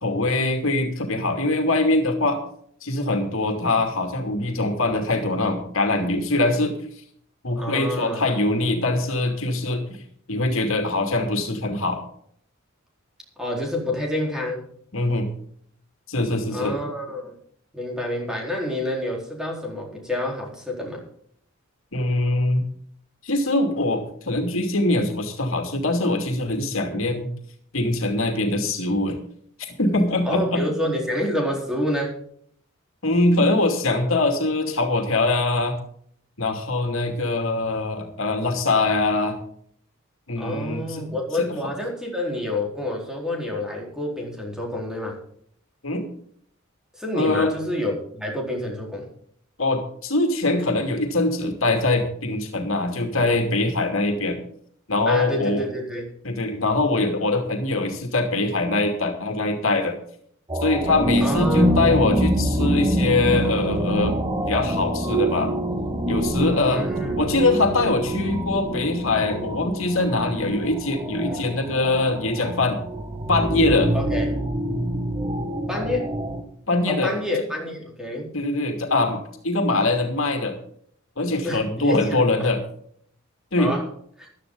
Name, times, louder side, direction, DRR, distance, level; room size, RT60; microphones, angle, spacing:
voice 1, 0.0-2.4 2.8-6.8 7.4-10.0 10.3-12.0 14.9-15.3 16.1-16.8 21.9-22.6 23.2-27.3 27.7-29.2 29.8-30.7 33.0-35.8 36.4-39.4 40.3-41.0 41.4-41.5 45.8-46.0 47.1-47.5 49.6-54.4 54.9-55.6 56.2-60.0 60.6-64.2 64.5-65.5 66.1-66.8 67.2-72.8 73.3-73.9 76.7-77.1 78.3-80.6 81.2-82.6 83.5-83.7, left 2 dB, 70° left, 4 dB, 2.6 m, -23 dB
voice 2, 7.6-8.3 13.4-14.6 16.5-17.3 17.7-21.0 26.9-27.0 30.2-32.2 40.4-45.2 46.9-49.1 55.1-56.1 61.2-61.8 66.7-67.2 71.3-71.4 73.9-74.3 75.7-76.1 76.9-78.4 81.4-82.3 83.6-83.9 84.2-84.3, left 1 dB, 5° right, -1 dB, 4.2 m, -28 dB
sound 1, 60.5-76.4, right 1 dB, 20° right, 1.4 m, -25 dB
15.0 x 12.0 x 3.9 m, 0.63 s
head